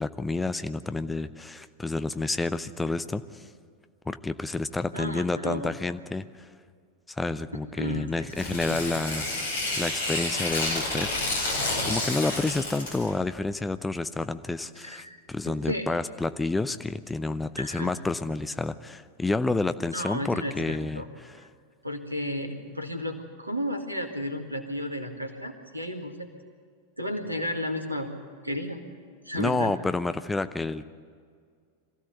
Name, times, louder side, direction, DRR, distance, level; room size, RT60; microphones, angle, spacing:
voice 1, 0.0-3.5 4.1-6.5 7.1-11.1 11.8-21.4 29.4-30.9, left 3 dB, 10° left, 11 dB, 0.7 m, -29 dB
voice 2, 4.9-5.7 7.8-8.1 8.5-8.8 14.8-15.9 17.6-17.9 19.9-21.1 21.4-21.5 21.8-26.3 27.0-28.8 29.2-29.7, equal, 85° right, 5 dB, 2.1 m, -33 dB
Tearing, 8.3-13.1, left 2 dB, 60° left, 5.0 m, -30 dB
23.0 x 15.5 x 8.2 m, 2.1 s
figure-of-eight pair, 90°, 0 cm